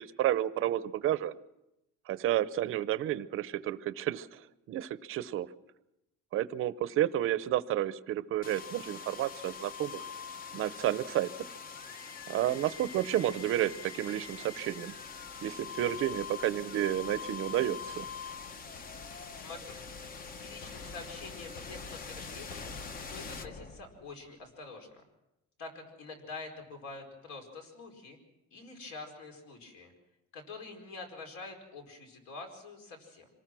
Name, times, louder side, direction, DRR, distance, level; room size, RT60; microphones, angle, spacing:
voice 1, 0.0-1.3 2.1-4.4 4.7-5.5 6.3-10.1 10.5-11.3 12.3-14.9 15.4-18.1, right 12 dB, 45° right, 15 dB, 0.7 m, -31 dB
sound 1, 8.4-24.3, left 6 dB, 30° left, 0.8 m, -43 dB
voice 2, 19.3-19.8 20.4-22.7 23.1-25.0 25.6-28.2 28.5-29.9 30.3-33.3, left 3 dB, 70° left, 4 dB, 4.9 m, -46 dB
26.0 x 19.0 x 6.2 m, 0.92 s
cardioid pair, 175°, 30 cm